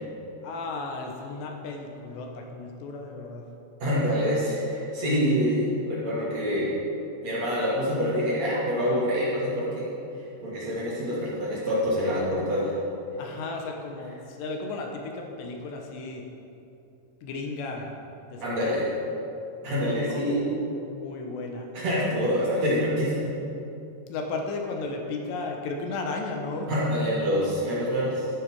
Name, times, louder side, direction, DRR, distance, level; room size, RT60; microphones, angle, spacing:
voice 1, 0.4-3.5 5.2-5.3 13.2-16.2 17.2-17.9 18.3-18.8 20.0-20.6 20.8-21.7 24.1-26.7, left 3 dB, 80° left, 2 dB, 3.1 m, -34 dB
voice 2, 3.8-6.7 7.2-9.8 10.4-12.7 18.4-18.9 19.6-20.5 21.7-23.3 26.7-28.3, equal, 45° right, -8 dB, 3.0 m, -26 dB
12.0 x 10.5 x 4.7 m, 2.8 s
omnidirectional pair, 5.1 m